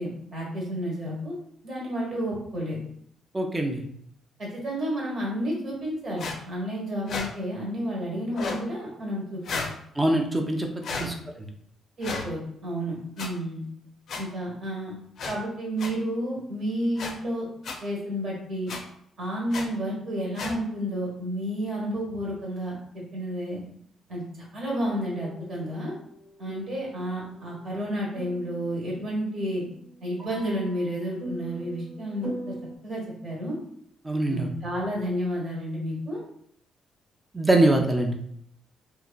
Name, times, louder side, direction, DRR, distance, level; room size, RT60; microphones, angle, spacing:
voice 1, 0.0-1.3 1.6-2.8 4.4-9.8 10.9-11.2 12.0-13.6 14.2-15.0 15.3-17.5 17.8-18.7 19.2-23.6 24.1-25.9 26.4-29.6 30.0-32.5 32.8-33.6 34.3-36.2, equal, 55° right, -3 dB, 1.1 m, -31 dB
voice 2, 3.3-3.8 10.0-11.1 34.0-34.5 37.3-38.1, right 1 dB, 15° right, 3 dB, 0.5 m, -23 dB
sound 1, 6.2-6.4 7.1-7.3 8.3-8.6 9.4-9.7 10.8-11.1 12.0-12.2 13.2-13.3 14.1-14.2 15.2-15.3 15.8-15.9 17.0-17.1 17.6-17.7 18.7-18.8 19.5-19.6 20.3-20.5, left 4 dB, 60° left, 0.4 m, -32 dB
sound 2, 25.0-32.8, right 1 dB, 85° right, 1.0 m, -42 dB
2.8 x 2.4 x 2.2 m, 0.67 s
cardioid pair, 90°, 0 cm